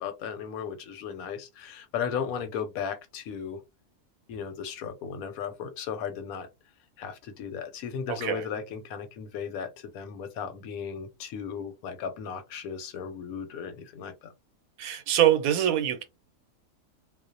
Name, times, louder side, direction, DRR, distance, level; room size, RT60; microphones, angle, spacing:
voice 1, 0.0-3.6 4.3-6.5 7.0-14.3, left 7 dB, 90° left, 1.0 m, -36 dB
voice 2, 14.8-16.0, right 11 dB, 85° right, 1.1 m, -24 dB
2.4 x 2.0 x 2.5 m
omnidirectional pair, 1.5 m